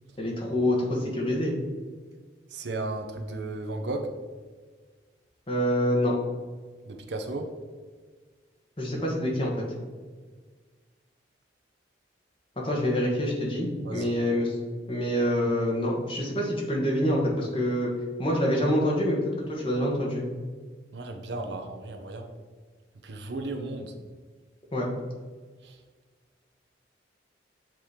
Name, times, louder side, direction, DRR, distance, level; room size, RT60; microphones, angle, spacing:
voice 1, 0.2-1.5 5.5-6.2 8.8-9.6 12.6-14.6 14.9-17.9 18.2-19.2 19.5-20.3 24.7-24.9, equal, 30° left, -2 dB, 1.2 m, -26 dB
voice 2, 2.5-4.1 6.9-7.5 13.8-14.1 20.9-22.3 23.0-23.9 25.6-25.8, right 2 dB, 70° right, 5 dB, 0.7 m, -34 dB
7.5 x 2.9 x 4.9 m, 1.5 s
head